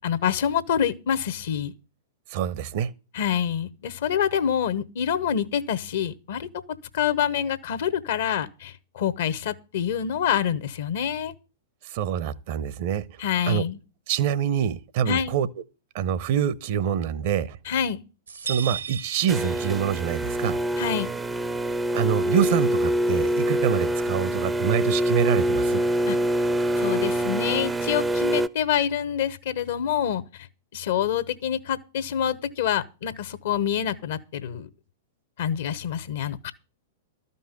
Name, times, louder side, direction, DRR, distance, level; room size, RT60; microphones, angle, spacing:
voice 1, 0.0-1.7 3.1-6.5 6.9-11.3 13.2-13.8 15.1-15.4 17.6-18.0 20.8-21.1 26.1-26.2 26.8-30.5 30.7-34.7 35.4-36.5, left 9 dB, 60° left, 1.0 m, -26 dB
voice 2, 2.3-2.9 11.8-13.0 13.5-13.6 14.1-15.5 15.9-17.6 18.4-20.6 21.9-25.8, right 9 dB, 50° right, 0.8 m, -25 dB
sound 1, 18.3-20.2, right 7 dB, 80° right, 1.5 m, -35 dB
sound 2, 19.3-28.5, right 1 dB, 10° right, 0.6 m, -25 dB
13.0 x 5.5 x 8.2 m
figure-of-eight pair, 100°, 0 cm